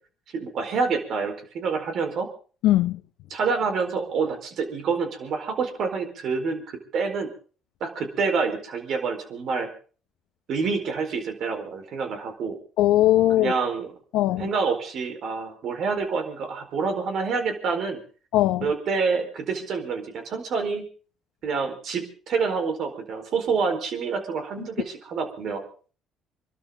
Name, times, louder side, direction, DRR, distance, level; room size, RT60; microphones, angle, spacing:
voice 1, 0.3-2.3 3.3-7.3 7.8-9.7 10.5-12.6 13.4-13.9 14.4-18.0 18.6-20.9 21.4-25.6, right 5 dB, 65° right, 4.4 m, -27 dB
voice 2, 2.6-3.0 12.8-13.5 14.1-14.5 18.3-18.7, left 14 dB, 75° left, 0.8 m, -20 dB
27.0 x 12.5 x 3.9 m
supercardioid pair, 65°, 0 cm